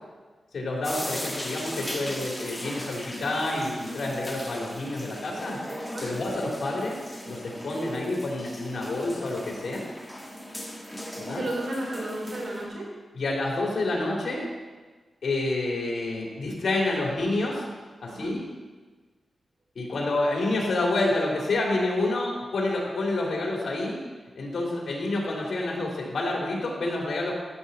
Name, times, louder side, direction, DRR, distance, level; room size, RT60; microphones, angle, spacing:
voice 1, 0.5-5.6 6.0-6.9 7.2-9.8 11.1-11.5 13.1-14.4 15.2-17.6 18.0-18.4 19.7-24.0 24.3-27.3, left 2 dB, 65° left, -2 dB, 2.9 m, -28 dB
sound 1, 0.8-12.7, equal, 5° left, 1.7 m, -38 dB
voice 2, 11.2-12.9 18.1-18.3, right 1 dB, 65° right, -3 dB, 3.4 m, -33 dB
13.5 x 7.7 x 4.1 m, 1.4 s
wide cardioid pair, 125°, 0 cm